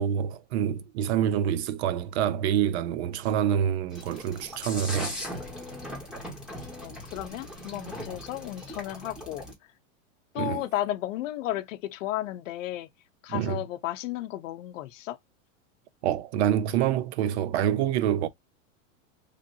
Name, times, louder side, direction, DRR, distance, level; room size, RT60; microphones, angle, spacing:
voice 1, 0.0-5.2 10.4-10.6 13.3-13.6 16.0-18.3, right 9 dB, 55° right, 0.5 m, -26 dB
sound 1, 3.9-9.5, left 1 dB, ahead, 0.7 m, -39 dB
voice 2, 6.8-9.4 10.3-12.9 13.2-15.2, left 14 dB, 70° left, 0.6 m, -33 dB
3.2 x 2.6 x 2.5 m
supercardioid pair, 155°, 40 cm